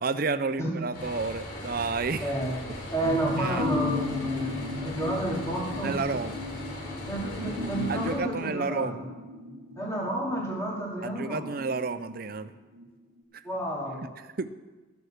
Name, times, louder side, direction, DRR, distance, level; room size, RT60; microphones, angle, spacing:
voice 1, 0.0-2.3 3.4-3.7 5.8-6.4 7.9-9.0 11.0-12.5 13.3-13.4 14.4-14.5, right 4 dB, 45° right, 12 dB, 0.6 m, -31 dB
sound 1, 0.9-8.2, left 1 dB, 70° left, 4.1 m, -39 dB
voice 2, 2.2-2.6 2.9-4.5 4.8-6.0 7.1-9.1 9.8-11.5 13.4-14.1, right 1 dB, 15° left, -5 dB, 2.9 m, -30 dB
sound 2, 3.0-12.9 13.2-13.3, left 2 dB, 80° right, 1.8 m, -36 dB
13.5 x 7.0 x 6.5 m, 1.2 s
head